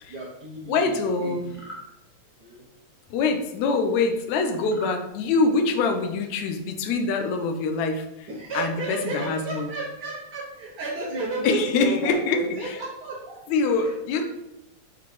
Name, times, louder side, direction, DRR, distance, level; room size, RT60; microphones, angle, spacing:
voice 1, 0.1-1.6 2.4-2.6 3.6-3.7 8.3-13.4 13.8-14.2, right 2 dB, 60° right, -5 dB, 1.0 m, -33 dB
voice 2, 0.7-1.5 3.1-8.3 8.5-9.7 11.4-12.8 13.5-14.2, left 4 dB, 75° left, 5 dB, 2.0 m, -24 dB
sound 1, 1.5-1.9 4.6-5.0, equal, 25° left, 0.6 m, -40 dB
5.7 x 4.0 x 4.9 m, 0.84 s
omnidirectional pair, 3.4 m